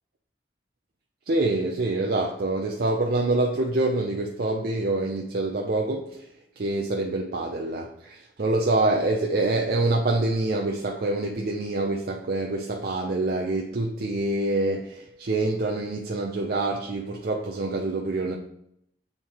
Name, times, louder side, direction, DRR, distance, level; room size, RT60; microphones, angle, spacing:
voice 1, 1.3-6.3 6.6-18.4, right 2 dB, 60° right, 0.6 m, -26 dB
7.2 x 3.3 x 4.5 m
head